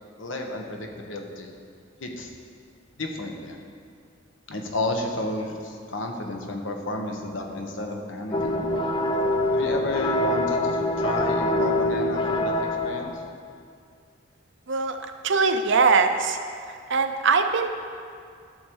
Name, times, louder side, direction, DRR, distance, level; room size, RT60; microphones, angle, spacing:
voice 1, 0.2-1.5 2.0-2.3 3.0-3.6 4.5-8.6 9.5-12.5 12.8-13.2, left 2 dB, 75° left, 2 dB, 1.2 m, -32 dB
sound 1, 8.3-13.3, left 1 dB, 25° left, 0.5 m, -24 dB
voice 2, 14.7-16.4 16.7-17.7, right 4 dB, 65° right, 7 dB, 0.7 m, -22 dB
12.5 x 6.6 x 4.6 m, 2.3 s
head